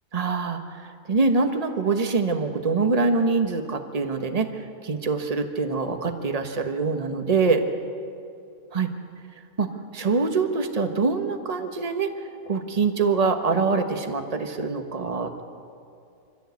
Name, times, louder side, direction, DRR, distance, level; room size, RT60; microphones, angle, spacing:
voice 1, 0.1-0.6 1.1-4.5 4.8-7.6 8.7-8.9 9.6-12.1 12.5-15.4, right 4 dB, 30° right, 6 dB, 1.3 m, -24 dB
24.5 x 15.0 x 8.4 m, 2.5 s
omnidirectional pair, 1.5 m